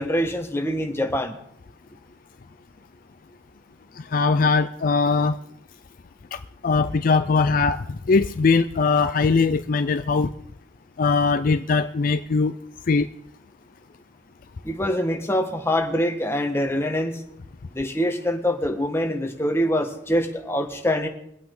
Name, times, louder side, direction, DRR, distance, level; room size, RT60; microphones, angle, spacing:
voice 1, 0.0-1.4 14.6-17.2 17.7-21.1, equal, 15° left, 3 dB, 1.4 m, -24 dB
voice 2, 4.0-5.4 6.3-10.3 11.0-12.5 12.9-13.1, left 4 dB, 45° left, 10 dB, 0.4 m, -21 dB
22.0 x 8.6 x 3.8 m, 0.73 s
head